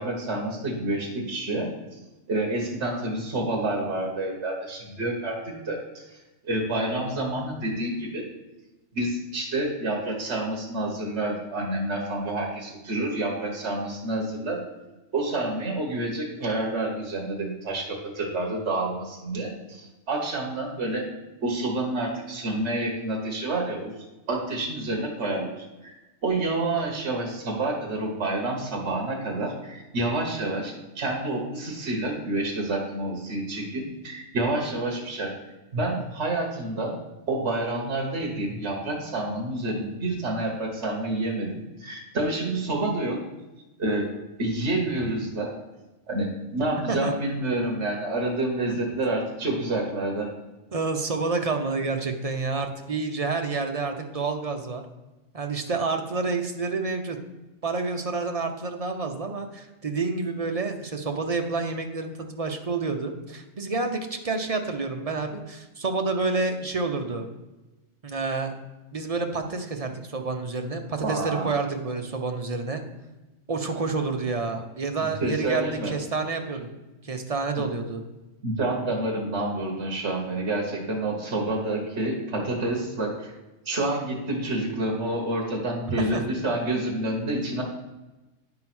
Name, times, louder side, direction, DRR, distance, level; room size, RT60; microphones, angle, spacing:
voice 1, 0.0-2.0 2.3-6.0 6.4-8.2 8.9-14.6 15.1-21.0 21.4-23.9 24.3-25.9 26.2-35.3 35.7-36.9 37.3-43.2 43.8-44.1 44.4-45.5 46.1-50.3 71.0-71.5 75.0-75.9 78.4-83.3 83.6-87.6, right 2 dB, 65° right, -1 dB, 1.6 m, -28 dB
voice 2, 50.7-54.8 55.3-57.2 57.6-67.3 68.0-68.5 68.9-72.8 73.5-76.7 77.0-78.0 86.1-86.2, right 3 dB, 35° right, 4 dB, 0.7 m, -29 dB
9.8 x 3.8 x 6.0 m, 1.1 s
omnidirectional pair, 1.2 m